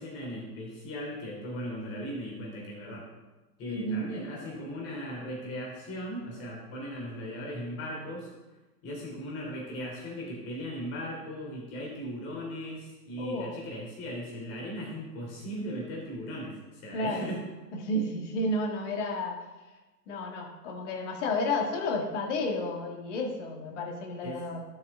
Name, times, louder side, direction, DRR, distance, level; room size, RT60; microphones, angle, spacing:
voice 1, 0.0-3.1 3.6-8.3 8.8-17.4 24.2-24.4, equal, 30° left, -2 dB, 3.4 m, -38 dB
voice 2, 3.7-4.1 13.2-13.6 16.9-17.3 17.7-19.4 20.1-24.6, left 1 dB, 45° left, 2 dB, 1.8 m, -31 dB
12.5 x 6.2 x 3.7 m, 1.2 s
figure-of-eight pair, 115°, 50 cm